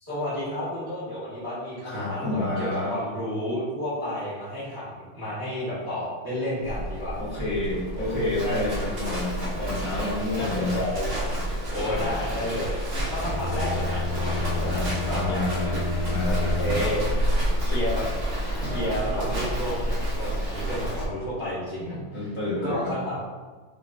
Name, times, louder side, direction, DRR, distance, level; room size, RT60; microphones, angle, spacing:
voice 1, 0.0-7.2 7.9-8.3 10.3-11.1 11.7-14.8 15.1-15.5 16.2-17.0 17.6-18.0 18.6-22.0 22.6-23.2, equal, 15° right, -11 dB, 0.9 m, -31 dB
voice 2, 1.8-2.9 7.2-10.8 14.6-16.7 21.8-22.9, left 2 dB, 50° left, -9 dB, 1.8 m, -29 dB
Livestock farm animals working animals, 6.6-21.0, equal, 45° right, 1.2 m, -29 dB
Bowed string instrument, 13.2-17.2, left 3 dB, 65° left, 2.4 m, -30 dB
6.1 x 2.8 x 2.6 m, 1.3 s
omnidirectional pair, 2.2 m